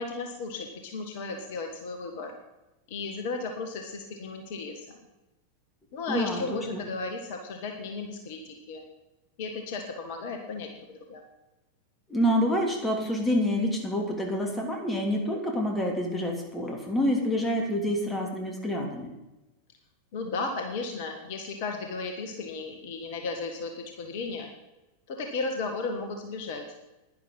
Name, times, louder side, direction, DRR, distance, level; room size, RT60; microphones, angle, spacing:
voice 1, 0.0-2.4 2.9-5.0 5.9-8.8 9.4-11.2 20.1-24.5 25.1-26.6, left 3 dB, 50° left, 4 dB, 1.6 m, -35 dB
voice 2, 6.1-6.8 12.1-19.1, equal, 15° left, 2 dB, 3.1 m, -27 dB
11.0 x 10.5 x 5.5 m, 1.0 s
figure-of-eight pair, 90°, 0 cm